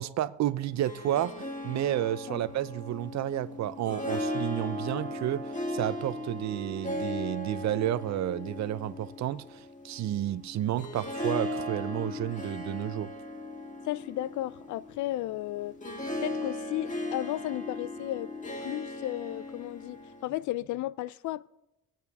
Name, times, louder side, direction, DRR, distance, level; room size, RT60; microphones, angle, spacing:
voice 1, 0.0-13.1, right 12 dB, 65° right, 0.6 m, -31 dB
Harp, 0.6-20.4, left 1 dB, 25° left, 1.9 m, -37 dB
voice 2, 13.8-15.8 16.2-18.3 18.6-21.5, left 15 dB, 75° left, 0.5 m, -34 dB
23.5 x 8.9 x 3.6 m
cardioid pair, 90°, 30 cm